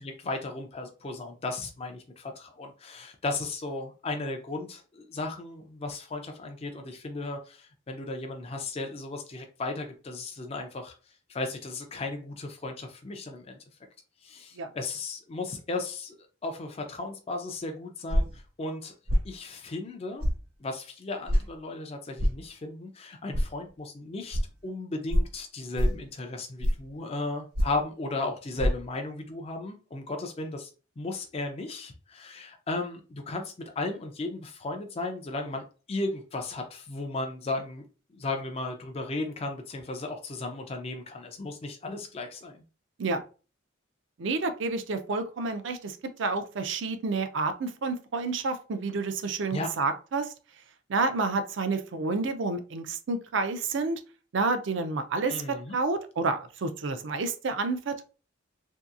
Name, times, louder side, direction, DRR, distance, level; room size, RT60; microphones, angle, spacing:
voice 1, 0.0-10.9 11.3-13.6 14.2-16.2 16.4-18.9 19.2-20.2 20.6-30.7 31.0-37.8 38.1-42.6 49.5-49.7 55.3-55.8, left 2 dB, 30° left, 4 dB, 0.4 m, -35 dB
sound 1, 18.1-18.4 19.1-19.3 20.2-20.4 21.3-21.4 22.2-22.4 23.3-23.5 24.3-24.4 25.1-25.3 25.8-26.0 26.6-26.9 27.5-27.8 28.6-28.7, equal, 90° right, 1.2 m, -24 dB
voice 2, 44.2-50.3 50.9-54.0 54.3-58.0, right 3 dB, 60° right, 9 dB, 0.4 m, -29 dB
2.9 x 2.7 x 2.4 m, 0.35 s
head